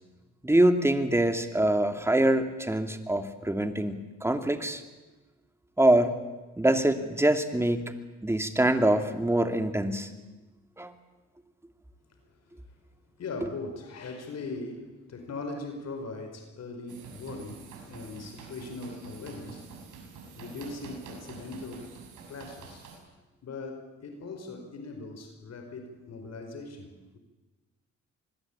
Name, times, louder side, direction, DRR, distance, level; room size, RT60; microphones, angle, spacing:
voice 1, 0.4-4.8 5.8-6.1 6.6-7.9 8.2-10.1 10.8-10.9 13.4-13.5, right 1 dB, 10° right, 7 dB, 2.6 m, -24 dB
voice 2, 13.2-19.7 20.3-21.9 22.3-22.9 23.4-27.2, left 3 dB, 60° left, 5 dB, 4.9 m, -40 dB
sound 1, 16.9-23.0, right 5 dB, 85° right, 7.2 m, -47 dB
26.5 x 21.0 x 8.7 m, 1.2 s
cardioid pair, 90°, 30 cm